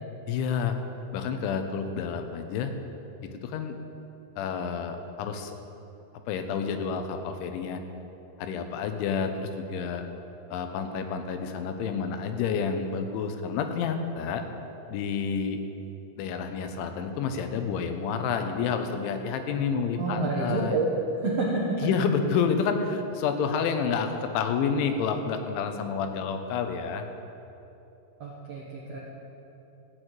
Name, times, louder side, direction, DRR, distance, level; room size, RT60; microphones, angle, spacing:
voice 1, 0.3-0.8 1.1-2.7 3.2-3.8 4.4-5.6 6.3-7.8 8.4-10.0 10.5-14.5 14.9-15.6 16.2-20.8 21.8-27.1, left 6 dB, 90° left, 7 dB, 3.3 m, -29 dB
voice 2, 20.0-20.8 21.2-21.9 28.2-29.0, right 3 dB, 85° right, -5 dB, 1.4 m, -28 dB
15.5 x 6.5 x 8.9 m, 2.9 s
omnidirectional pair, 5.3 m